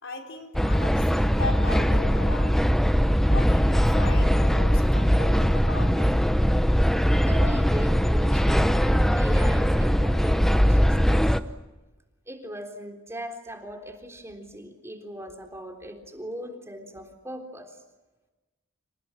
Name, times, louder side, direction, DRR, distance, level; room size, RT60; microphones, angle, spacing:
voice 1, 0.0-2.6 3.3-6.2, left 3 dB, 75° left, 3 dB, 4.3 m, -37 dB
sound 1, 0.5-11.4, equal, ahead, 0.9 m, -21 dB
voice 2, 7.2-11.2 12.3-17.7, equal, 15° right, 4 dB, 3.7 m, -39 dB
30.0 x 28.0 x 6.1 m, 1.1 s
head